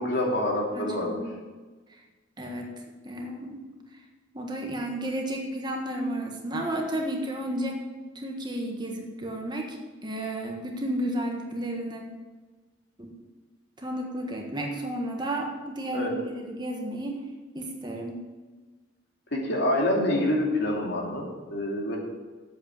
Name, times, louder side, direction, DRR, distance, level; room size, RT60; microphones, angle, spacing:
voice 1, 0.0-1.2 15.9-16.1 19.3-22.0, left 1 dB, 60° left, -1 dB, 2.7 m, -26 dB
voice 2, 0.7-1.3 2.4-2.7 3.0-3.6 4.3-7.8 8.1-9.8 10.0-12.0 13.0-13.1 13.8-17.2 17.5-18.2, right 1 dB, 20° right, 1 dB, 1.5 m, -32 dB
8.5 x 8.3 x 9.1 m, 1.3 s
head